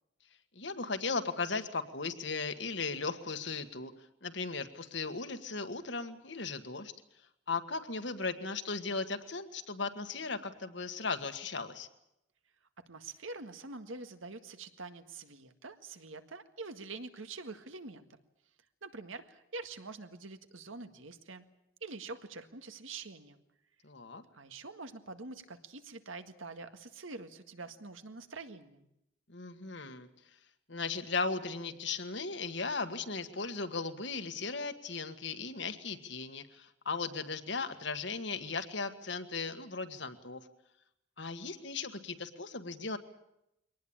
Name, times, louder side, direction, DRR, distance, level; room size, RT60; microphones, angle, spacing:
voice 1, 0.5-3.9 4.2-6.9 7.5-11.9 23.8-24.2 29.3-30.1 30.7-40.4 41.2-43.0, left 4 dB, 65° left, 8 dB, 1.7 m, -37 dB
voice 2, 12.9-18.1 18.8-21.4 21.8-23.4 24.3-28.9, right 3 dB, 85° right, 8 dB, 1.8 m, -45 dB
23.0 x 19.0 x 8.9 m, 0.84 s
head